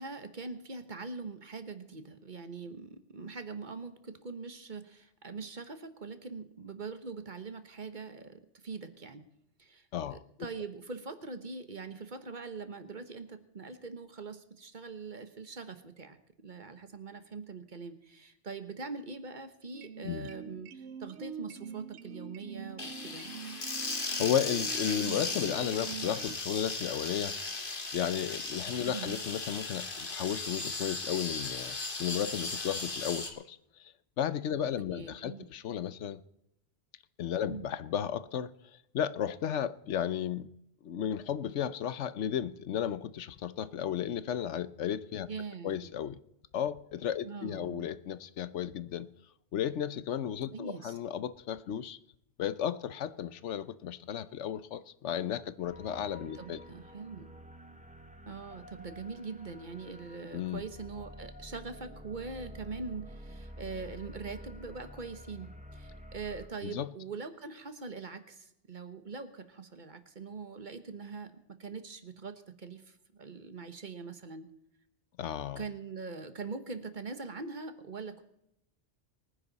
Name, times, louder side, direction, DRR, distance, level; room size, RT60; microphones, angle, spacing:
voice 1, 0.0-9.2 9.6-23.4 28.9-29.2 34.9-35.5 37.5-37.7 45.3-45.9 47.2-47.9 50.5-51.0 56.3-57.3 58.3-74.5 75.6-78.2, right 4 dB, 45° right, 1.4 m, -43 dB
voice 2, 9.9-10.2 20.0-20.3 23.9-27.4 27.9-36.2 37.2-38.5 38.9-40.5 40.8-45.3 45.6-46.2 46.5-49.1 49.5-52.0 52.4-56.6 60.3-60.6 66.6-66.9 75.2-75.6, left 9 dB, 85° left, 1.1 m, -34 dB
sound 1, 19.7-26.4, right 7 dB, 80° right, 1.0 m, -45 dB
sound 2, 22.8-33.3, left 3 dB, 50° left, 1.9 m, -37 dB
sound 3, 55.6-66.5, equal, 5° right, 1.1 m, -49 dB
24.0 x 10.0 x 4.1 m
omnidirectional pair, 1.2 m